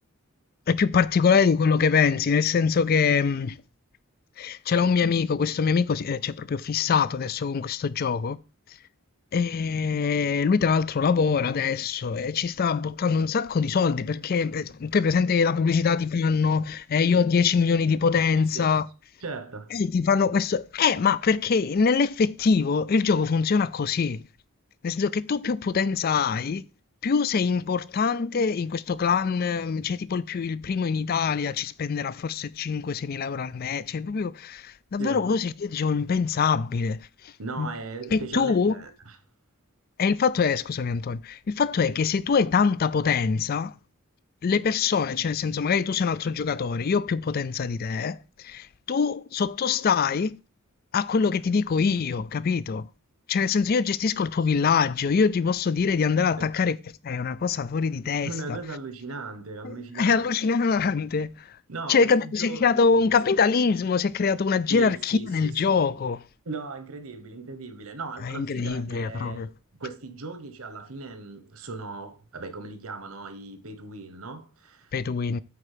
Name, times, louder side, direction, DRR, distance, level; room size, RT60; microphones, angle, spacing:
voice 1, 0.7-3.6 4.4-8.4 9.3-18.8 19.7-24.2 24.8-26.7 27.0-37.7 38.1-38.8 40.0-43.7 44.4-50.3 50.9-52.9 53.3-56.8 57.0-58.3 59.6-61.6 61.9-66.2 68.2-69.5 74.9-75.4, left 5 dB, 40° left, 0.3 m, -24 dB
voice 2, 19.2-19.8 35.0-35.2 37.4-39.2 56.4-56.5 58.2-60.3 61.7-63.1 64.7-65.7 66.4-69.5 69.8-74.9, right 3 dB, 70° right, 1.1 m, -38 dB
8.6 x 4.3 x 5.0 m
head